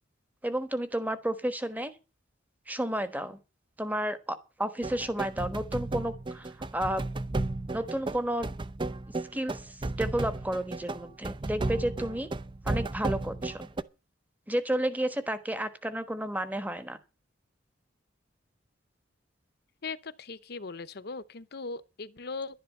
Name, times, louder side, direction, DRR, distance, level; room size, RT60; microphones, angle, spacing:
voice 1, 0.4-1.9 2.7-3.4 3.8-7.0 7.7-8.5 9.3-12.3 12.6-13.7 14.5-17.0, right 1 dB, 10° right, 1.2 m, -32 dB
sound 1, 4.8-13.8, right 2 dB, 25° right, 0.6 m, -34 dB
voice 2, 19.8-22.6, left 4 dB, 55° left, 0.8 m, -39 dB
11.5 x 10.5 x 6.5 m
head